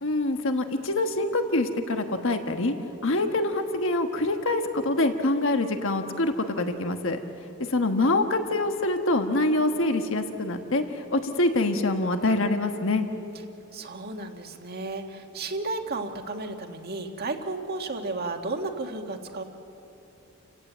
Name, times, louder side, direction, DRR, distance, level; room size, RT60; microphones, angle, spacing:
voice 1, 0.0-2.7 3.0-7.2 7.6-13.0, left 2 dB, 65° left, 6 dB, 1.4 m, -25 dB
voice 2, 13.7-19.4, right 3 dB, 50° right, 3 dB, 1.7 m, -33 dB
29.5 x 17.0 x 8.1 m, 3.0 s
head